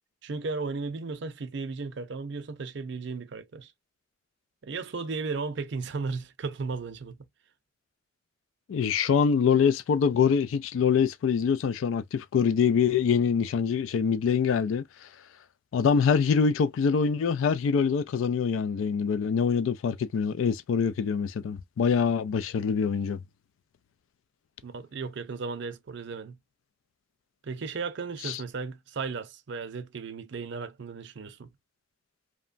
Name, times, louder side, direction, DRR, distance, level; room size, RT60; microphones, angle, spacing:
voice 1, 0.2-3.7 4.6-7.2 24.6-26.4 27.4-31.5, right 4 dB, 60° right, 0.5 m, -35 dB
voice 2, 8.7-15.1 15.7-23.2 28.2-28.4, left 6 dB, 85° left, 0.3 m, -25 dB
2.9 x 2.2 x 2.4 m
head